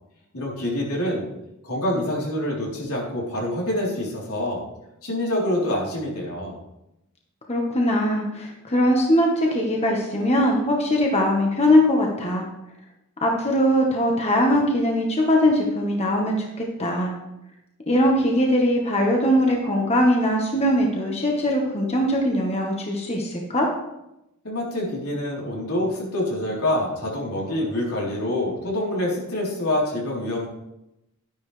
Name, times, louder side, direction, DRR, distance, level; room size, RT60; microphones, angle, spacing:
voice 1, 0.3-1.3 1.6-4.6 5.0-6.6 24.4-30.5, left 1 dB, 85° left, -3 dB, 3.8 m, -26 dB
voice 2, 7.5-12.5 13.2-17.1 17.9-23.7, equal, 30° left, 0 dB, 1.4 m, -21 dB
11.5 x 10.5 x 3.3 m, 0.89 s
head